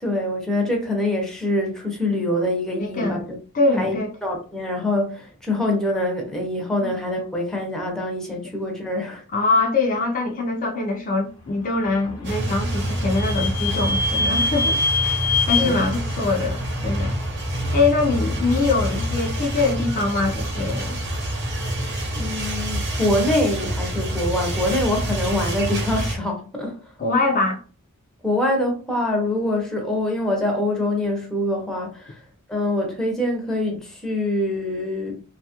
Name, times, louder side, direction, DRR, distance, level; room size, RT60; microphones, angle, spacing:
voice 1, 0.0-3.2 3.8-9.2 15.6-15.8 22.1-26.8 28.2-32.2 32.5-35.2, left 1 dB, ahead, 0.7 m, -24 dB
voice 2, 2.8-3.2 3.5-4.1 6.8-6.9 9.3-15.2 15.5-17.1 17.7-21.0 27.0-27.6, left 3 dB, 40° left, 0.5 m, -23 dB
Vehicle / Squeak, 11.8-17.4, left 3 dB, 85° left, 0.8 m, -26 dB
sound 1, 12.2-26.1, right 1 dB, 55° right, 0.9 m, -27 dB
2.7 x 2.4 x 2.8 m
head